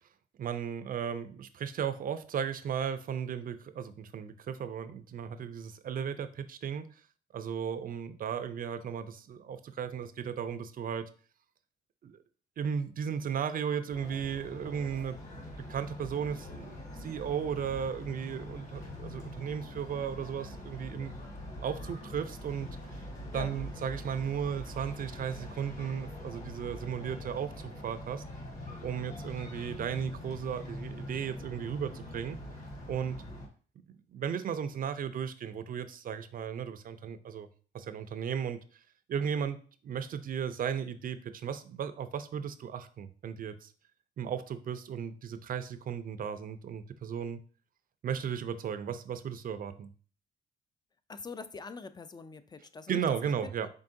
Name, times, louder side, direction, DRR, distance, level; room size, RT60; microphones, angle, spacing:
voice 1, 0.4-6.9 7.3-11.1 12.0-12.2 12.6-21.2 21.6-22.7 23.3-28.2 28.8-32.4 32.9-33.2 34.1-37.5 37.7-38.6 39.1-39.6 39.8-43.7 44.2-47.4 48.0-49.9 52.9-53.7, right 7 dB, 45° right, 10 dB, 0.5 m, -35 dB
sound 1, 13.9-33.5, left 1 dB, 40° left, 1.5 m, -43 dB
voice 2, 51.1-53.7, left 4 dB, 20° left, 12 dB, 0.3 m, -44 dB
4.6 x 3.5 x 2.6 m, 0.41 s
cardioid pair, 90°, 20 cm